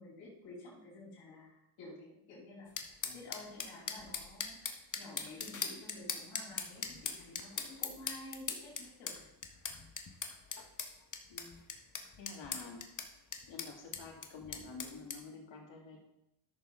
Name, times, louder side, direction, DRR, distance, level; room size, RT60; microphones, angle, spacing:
voice 1, 0.0-2.7 3.1-9.3, left 2 dB, 85° left, -5 dB, 3.5 m, -51 dB
sound 1, 2.8-15.2, left 5 dB, 35° left, 1.6 m, -41 dB
voice 2, 12.2-12.9 13.5-16.0, left 4 dB, 60° left, -1 dB, 3.2 m, -49 dB
13.0 x 6.5 x 4.0 m, 0.86 s
supercardioid pair, 60°, 50 cm